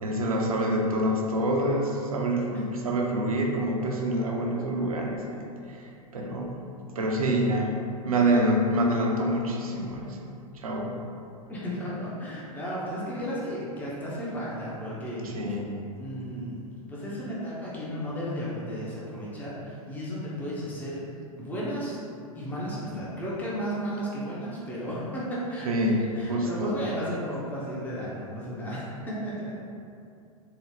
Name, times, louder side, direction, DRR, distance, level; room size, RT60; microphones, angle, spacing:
voice 1, 0.0-5.4 5.7-6.5 6.9-7.7 8.0-10.2 10.5-10.9 15.2-15.8 25.6-26.7, right 1 dB, 70° right, 0 dB, 0.5 m, -26 dB
voice 2, 11.5-15.5 16.0-16.6 16.9-21.0 21.4-22.0 22.3-25.7 26.1-29.5, equal, 10° left, -7 dB, 0.6 m, -34 dB
3.7 x 2.0 x 3.0 m, 2.6 s
figure-of-eight pair, 95°, 19 cm